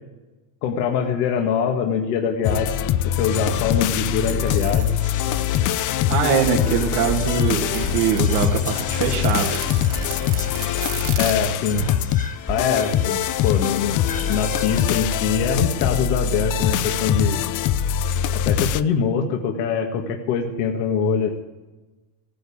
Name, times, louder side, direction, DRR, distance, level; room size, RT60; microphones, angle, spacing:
voice 1, 0.6-2.7 3.2-4.9 11.2-11.9 12.5-14.0 14.3-17.4 18.3-21.3, left 6 dB, 75° left, 3 dB, 2.0 m, -23 dB
sound 1, 2.4-18.8, left 10 dB, 40° left, 0.6 m, -23 dB
sound 2, 4.2-6.6 7.0-11.3, right 10 dB, 50° right, 2.1 m, -36 dB
Whispering, 4.7-17.2, left 2 dB, 15° left, 1.6 m, -36 dB
voice 2, 6.1-9.6, right 7 dB, 80° right, -4 dB, 2.7 m, -22 dB
16.0 x 10.0 x 8.7 m, 1.1 s
supercardioid pair, 120°, 48 cm